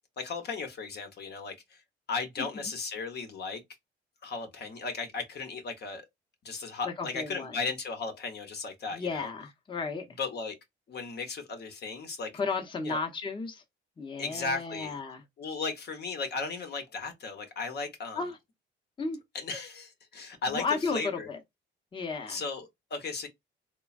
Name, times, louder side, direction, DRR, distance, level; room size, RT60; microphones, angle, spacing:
voice 1, 0.2-1.8 2.1-3.6 4.2-6.0 6.4-9.3 10.2-10.5 10.9-12.3 12.8-13.0 14.2-15.0 15.4-18.2 19.3-21.3 22.3-23.3, left 4 dB, 55° left, 0.9 m, -36 dB
voice 2, 6.8-7.6 8.9-10.0 12.3-13.6 14.0-15.2 18.1-18.4 19.0-19.2 20.5-21.4 21.9-22.4, left 4 dB, 25° left, 0.7 m, -33 dB
3.1 x 2.2 x 2.3 m
cardioid pair, 90°, 20 cm